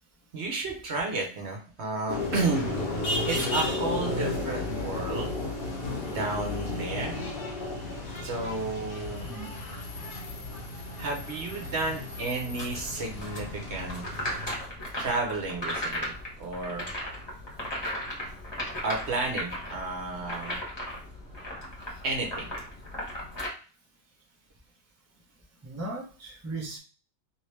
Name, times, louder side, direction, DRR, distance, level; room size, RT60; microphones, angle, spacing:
voice 1, 0.3-2.7 3.2-5.3 6.0-7.2 8.2-9.3 11.0-14.0 14.9-16.9 18.8-20.6 22.0-22.5, right 3 dB, 55° right, 1 dB, 1.1 m, -32 dB
sound 1, 2.1-14.6, left 2 dB, 50° left, 1.0 m, -33 dB
sound 2, 12.5-23.5, equal, 20° left, 1.0 m, -37 dB
voice 2, 25.6-26.8, right 2 dB, 15° right, -2 dB, 0.5 m, -37 dB
3.0 x 3.0 x 3.2 m, 0.37 s
omnidirectional pair, 1.4 m